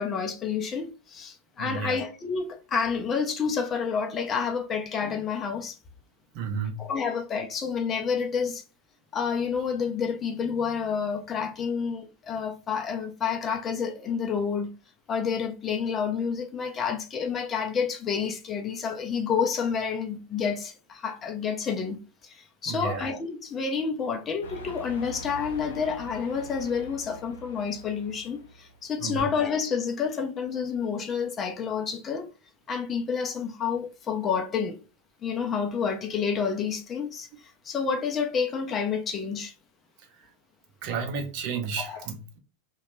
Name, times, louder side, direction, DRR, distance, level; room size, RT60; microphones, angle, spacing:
voice 1, 0.0-5.8 6.8-8.6 9.1-14.7 15.1-32.3 32.7-34.8 35.2-37.3 37.6-39.5 41.8-42.0, left 6 dB, 25° left, 0.5 m, -29 dB
voice 2, 1.6-2.0 6.3-6.9 22.7-23.1 29.0-29.3 40.8-42.4, right 5 dB, 45° right, 0.7 m, -32 dB
sound 1, 24.4-29.0, left 1 dB, 70° left, 0.6 m, -44 dB
2.8 x 2.2 x 3.0 m
figure-of-eight pair, 90°, 0 cm